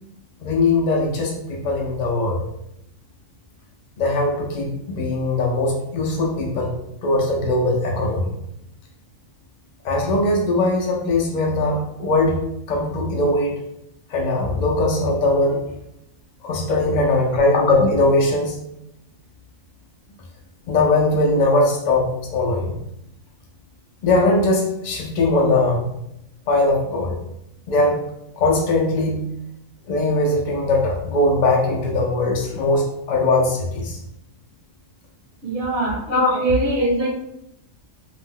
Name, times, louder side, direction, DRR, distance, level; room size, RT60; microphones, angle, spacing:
voice 1, 0.4-2.4 4.0-8.3 9.8-12.4 12.7-13.5 14.1-15.6 16.4-18.6 20.7-22.7 24.0-25.9 26.5-27.2 27.7-28.0 28.4-29.2 29.9-34.0 36.1-36.4, left 2 dB, 80° left, -1 dB, 0.4 m, -20 dB
voice 2, 35.4-37.1, right 1 dB, 60° right, -2 dB, 0.9 m, -22 dB
2.5 x 2.1 x 3.5 m, 0.81 s
omnidirectional pair, 1.4 m